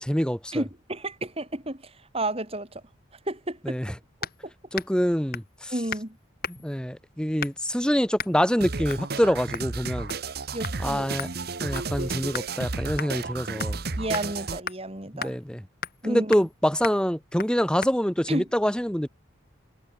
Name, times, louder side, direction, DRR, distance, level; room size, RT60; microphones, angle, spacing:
voice 1, 0.0-0.6 3.6-3.9 4.7-5.7 6.6-10.1 10.8-11.3 11.6-13.8 15.1-15.6 16.0-19.1, equal, 5° left, 1.5 m, -25 dB
voice 2, 0.5-2.8 3.3-3.8 4.4-4.5 5.7-6.2 6.5-6.6 10.5-11.0 14.0-15.4 16.0-16.5 18.3-18.5, right 1 dB, 30° right, 3.3 m, -32 dB
sound 1, 4.2-4.4 4.7-5.0 5.3-5.6 5.9-6.1 6.4-6.8 7.4-7.7 8.2-8.4 8.9-9.1 9.5-9.7 10.1-10.4 10.6-10.8 11.2-12.5 13.0-13.1 13.6-13.8 14.1-14.3 14.7-14.8 15.2-15.3 15.8-16.0 16.3-16.5 16.8-17.0 17.4-17.5 17.8-17.9, left 7 dB, 45° left, 3.0 m, -36 dB
sound 2, 8.6-14.6, right 3 dB, 50° right, 1.2 m, -32 dB
head